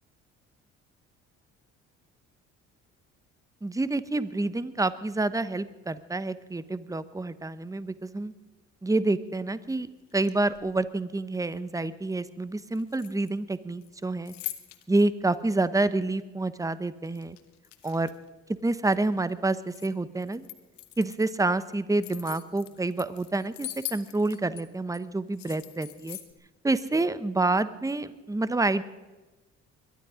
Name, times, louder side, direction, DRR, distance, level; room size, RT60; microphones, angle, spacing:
voice 1, 3.6-8.3 8.8-9.9 10.1-14.3 14.9-17.4 17.8-18.1 18.6-20.5 21.0-26.2 26.6-28.8, right 2 dB, 10° right, 15 dB, 1.0 m, -28 dB
sound 1, 10.1-10.8 12.7-13.5 13.8-15.0 15.5-15.6 17.1-18.3 18.7-19.9 20.2-21.3 21.7-24.6 24.9-25.0 25.3-26.3, left 16 dB, 90° left, 1.1 m, -42 dB
22.0 x 12.5 x 5.1 m, 1.1 s
hypercardioid pair, 55°, 36 cm